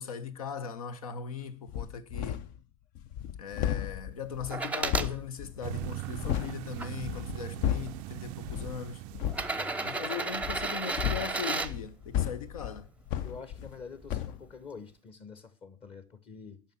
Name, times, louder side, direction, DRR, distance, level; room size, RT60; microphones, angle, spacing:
voice 1, 0.0-2.4 3.4-9.0 9.8-12.9, left 6 dB, 70° left, 1.0 m, -39 dB
sound 1, 1.7-2.6 2.9-6.6 7.0-8.0 8.4-8.8 9.1-9.5 10.4-13.8 14.1-14.4, left 10 dB, 50° left, 0.7 m, -34 dB
sound 2, 4.5-5.1 5.8-6.9 7.9-8.0 9.2-11.7 13.6-13.7, right 3 dB, 10° right, 0.7 m, -33 dB
sound 3, 5.6-10.2, right 22 dB, 50° right, 0.4 m, -40 dB
voice 2, 9.5-10.1 13.2-16.6, left 5 dB, 30° left, 1.1 m, -47 dB
8.8 x 5.8 x 7.2 m
figure-of-eight pair, 85°, 19 cm